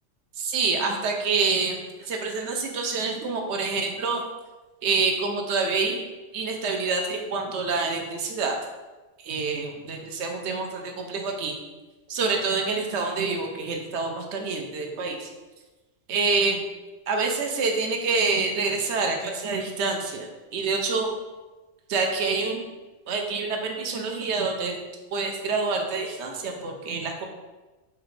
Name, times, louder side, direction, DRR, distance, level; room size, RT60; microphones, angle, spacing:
voice 1, 0.4-4.2 4.8-6.1 6.3-8.6 9.2-11.6 12.1-15.3 16.1-16.6 17.1-21.1 21.9-22.7 23.1-24.7 25.1-27.2, right 4 dB, 70° right, 2 dB, 0.8 m, -27 dB
4.8 x 2.4 x 3.1 m, 1.2 s
omnidirectional pair, 1.2 m